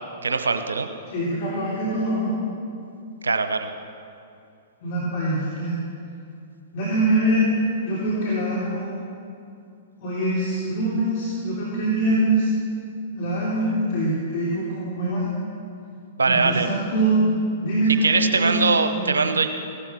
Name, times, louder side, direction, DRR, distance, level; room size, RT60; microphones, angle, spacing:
voice 1, 0.2-0.9 3.2-3.7 16.2-16.7 18.0-19.5, right 4 dB, 80° right, 8 dB, 1.0 m, -21 dB
voice 2, 1.1-2.3 4.8-5.7 6.7-7.5 7.8-9.0 10.0-12.5 13.1-15.3 16.2-17.2 17.6-18.6 18.9-19.1, right 1 dB, 50° left, -6 dB, 3.5 m, -24 dB
17.0 x 12.0 x 6.4 m, 2.5 s
figure-of-eight pair, 110°, 0 cm